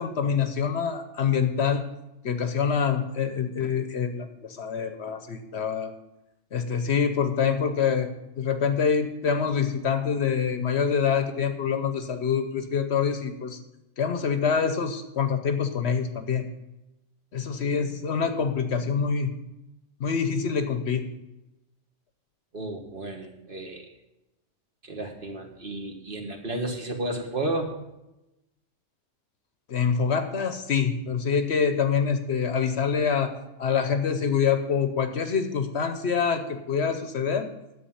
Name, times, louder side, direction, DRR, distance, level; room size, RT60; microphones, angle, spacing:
voice 1, 0.0-1.8 2.2-5.9 6.5-8.1 8.4-13.6 14.0-16.5 17.3-19.3 20.0-21.1 29.7-33.3 33.6-37.5, left 6 dB, 60° left, 8 dB, 1.0 m, -25 dB
voice 2, 22.5-23.9 24.8-27.7, right 2 dB, 45° right, 3 dB, 1.5 m, -32 dB
10.5 x 7.8 x 5.7 m, 0.94 s
omnidirectional pair, 1.3 m